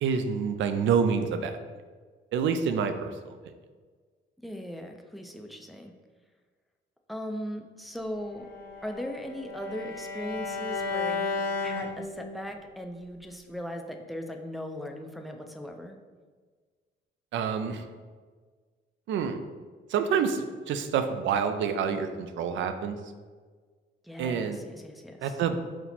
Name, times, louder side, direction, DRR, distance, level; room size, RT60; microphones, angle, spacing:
voice 1, 0.0-1.6 2.3-3.1 17.3-17.8 19.1-19.4 19.9-23.0 24.2-24.6 25.2-25.6, right 6 dB, 70° right, 8 dB, 0.4 m, -27 dB
voice 2, 4.4-5.9 7.1-8.5 8.8-16.0 24.0-25.4, equal, ahead, 3 dB, 0.4 m, -38 dB
Bowed string instrument, 8.4-12.6, left 4 dB, 50° left, 0.8 m, -33 dB
4.2 x 2.0 x 4.2 m, 1.5 s
cardioid pair, 90°, 20 cm